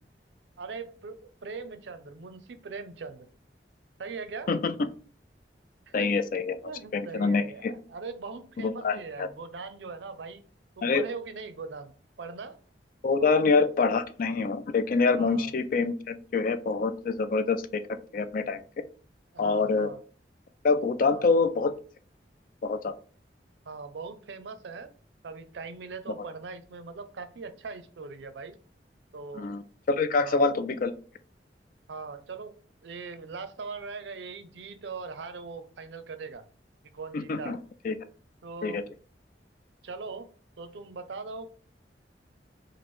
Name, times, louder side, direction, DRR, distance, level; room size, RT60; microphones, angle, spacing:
voice 1, 0.6-3.3 4.0-4.5 5.9-6.2 6.6-10.4 10.8-11.9 12.2-12.6 13.2-13.5 15.2-15.5 19.3-20.0 21.0-21.2 23.6-24.9 25.2-28.6 29.1-29.5 30.1-30.5 31.9-32.5 32.8-36.4 36.9-37.6 38.4-38.8 39.8-40.3 40.6-41.5, right 4 dB, 85° right, 0.5 m, -40 dB
voice 2, 5.9-6.6 6.9-7.7 8.6-9.3 10.8-11.0 13.0-17.8 18.1-18.6 19.4-19.9 20.6-21.7 22.6-22.9 29.3-29.6 29.9-30.9 37.1-37.6 37.8-37.9 38.6-38.8, left 4 dB, 50° left, 0.4 m, -25 dB
3.1 x 2.5 x 4.3 m
head